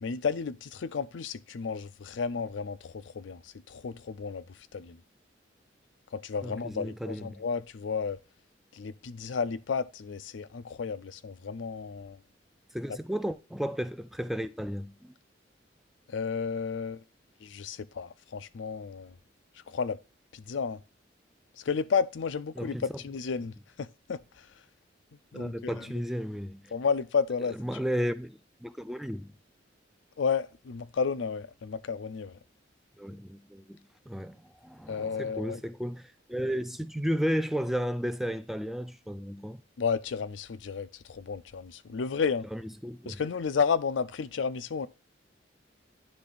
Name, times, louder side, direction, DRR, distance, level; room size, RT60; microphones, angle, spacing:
voice 1, 0.0-5.0 6.1-8.2 8.7-12.2 16.1-17.0 17.4-19.1 19.7-20.0 20.3-20.8 21.6-24.5 25.3-25.8 26.7-27.6 30.2-32.4 34.9-35.6 39.8-42.5 43.1-44.9, left 5 dB, 90° left, 0.5 m, -32 dB
voice 2, 6.4-7.4 12.7-15.1 22.6-22.9 25.3-26.7 27.5-29.3 33.0-33.8 34.1-39.6 42.5-43.2, equal, ahead, 0.3 m, -33 dB
10.0 x 3.4 x 3.9 m
head